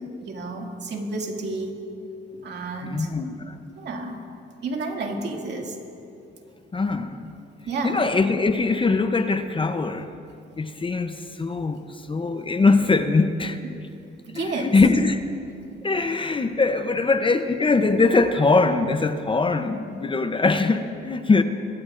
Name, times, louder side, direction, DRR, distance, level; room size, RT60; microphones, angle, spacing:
voice 1, 0.2-1.7 2.4-3.1 3.8-4.2 4.6-5.8 7.7-8.0 14.3-14.8, right 3 dB, 60° right, 1 dB, 2.3 m, -31 dB
voice 2, 2.8-3.6 6.7-7.3 7.8-10.1 10.6-13.6 14.3-15.2 15.8-21.4, left 3 dB, 25° left, 9 dB, 0.7 m, -22 dB
23.5 x 16.5 x 2.5 m, 2.6 s
cardioid pair, 90°, 20 cm